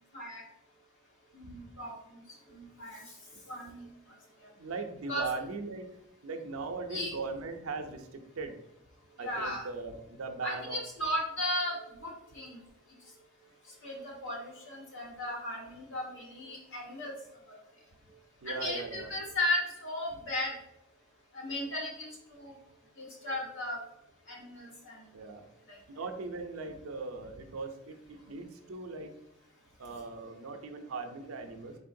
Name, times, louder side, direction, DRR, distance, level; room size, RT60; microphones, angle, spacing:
voice 1, 1.3-1.9 2.5-3.0 3.5-3.9 5.1-5.2 6.9-7.1 9.2-9.7 10.4-12.6 13.8-17.1 18.4-20.5 21.3-22.5 23.0-23.8 24.3-25.0 25.7-25.8, left 1 dB, 60° left, -3 dB, 1.4 m, -36 dB
voice 2, 4.6-5.9 6.2-8.6 9.2-10.8 18.4-19.1 25.1-25.4 25.9-29.1 29.8-31.8, right 3 dB, 75° right, 6 dB, 0.5 m, -39 dB
4.0 x 3.7 x 2.6 m, 0.80 s
head